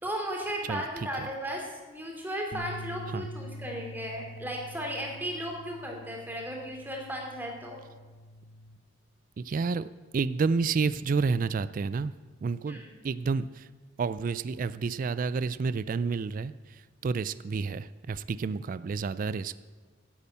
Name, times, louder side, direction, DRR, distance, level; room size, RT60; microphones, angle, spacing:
voice 1, 0.0-7.8 12.7-12.9, equal, 10° right, 0 dB, 2.6 m, -35 dB
sound 1, 2.5-8.8, left 1 dB, 45° left, 0.8 m, -45 dB
voice 2, 9.4-9.9 10.1-12.1 12.4-13.7 14.0-19.6, right 4 dB, 45° right, 15 dB, 0.3 m, -30 dB
10.5 x 8.7 x 8.4 m, 1.4 s
head